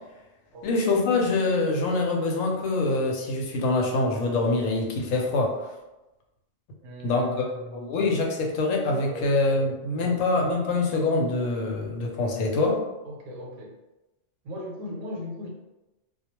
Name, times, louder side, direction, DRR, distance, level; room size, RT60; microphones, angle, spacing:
voice 1, 0.6-5.5 7.0-7.4 7.7-12.8, left 3 dB, 85° left, 1 dB, 1.0 m, -25 dB
voice 2, 6.8-8.1 9.1-9.3 9.9-10.2 13.0-13.8 14.4-15.5, equal, 75° right, -1 dB, 0.9 m, -38 dB
2.2 x 2.2 x 2.9 m, 1.0 s
omnidirectional pair, 1.3 m